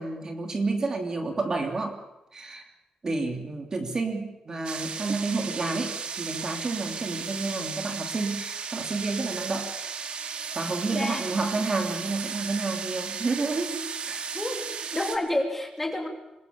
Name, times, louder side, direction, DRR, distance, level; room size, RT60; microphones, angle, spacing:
voice 1, 0.0-2.0 2.3-2.6 3.0-9.7 10.5-14.2, right 3 dB, 30° right, 4 dB, 2.8 m, -30 dB
sound 1, 4.7-15.2, right 6 dB, 55° right, 2.1 m, -35 dB
voice 2, 14.3-14.6 14.9-16.1, left 1 dB, 10° left, 3 dB, 3.1 m, -29 dB
26.5 x 21.0 x 7.0 m, 0.96 s
wide cardioid pair, 160°, 2 cm